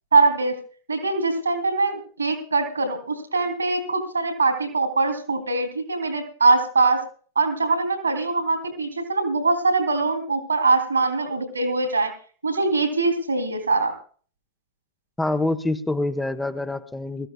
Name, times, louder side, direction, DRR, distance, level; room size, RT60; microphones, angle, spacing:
voice 1, 0.1-0.6 0.9-7.0 7.3-12.1 12.4-13.9, right 3 dB, 80° right, 6 dB, 3.1 m, -22 dB
voice 2, 15.2-17.3, left 2 dB, 5° left, 8 dB, 0.8 m, -26 dB
21.5 x 14.5 x 2.3 m, 0.43 s
figure-of-eight pair, 90°, 0 cm